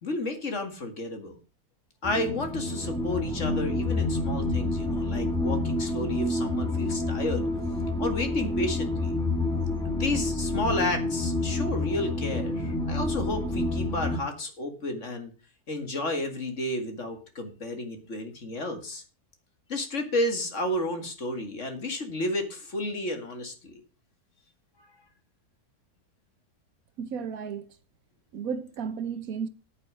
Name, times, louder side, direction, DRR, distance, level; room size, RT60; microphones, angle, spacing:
voice 1, 0.0-1.4 2.0-7.5 8.0-9.1 10.0-15.3 15.7-19.0 19.7-23.7, left 1 dB, 50° left, 2.2 m, -31 dB
sound 1, 2.0-14.2, left 2 dB, ahead, 1.4 m, -28 dB
voice 2, 27.0-27.7 28.3-29.5, right 6 dB, 65° right, 1.2 m, -33 dB
8.9 x 8.6 x 6.3 m
omnidirectional pair, 1.7 m